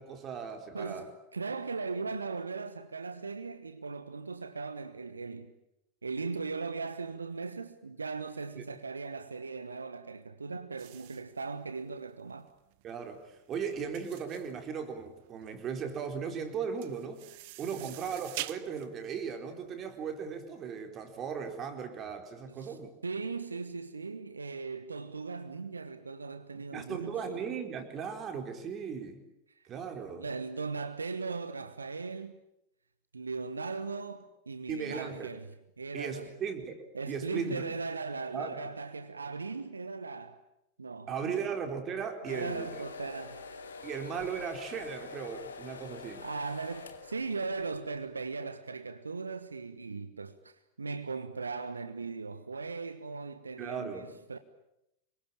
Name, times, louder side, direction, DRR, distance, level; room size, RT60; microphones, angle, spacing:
voice 1, 0.0-1.1 8.6-8.7 12.8-17.2 17.6-22.9 26.7-29.2 29.7-30.3 34.7-35.3 35.9-36.8 37.1-37.6 38.3-38.6 41.1-42.8 43.8-46.3 53.6-54.1, right 6 dB, 30° right, 4.2 m, -37 dB
voice 2, 0.7-5.5 6.0-12.5 17.8-18.0 22.5-27.4 29.5-29.6 30.2-32.4 33.1-36.3 36.9-40.4 40.8-41.4 42.2-43.4 46.1-54.4, right 4 dB, 75° right, 1.2 m, -38 dB
sound 1, 10.8-20.4, right 18 dB, 50° right, 1.0 m, -46 dB
sound 2, 42.3-47.8, left 5 dB, 70° left, 2.7 m, -45 dB
26.5 x 23.5 x 8.8 m
figure-of-eight pair, 90°, 0 cm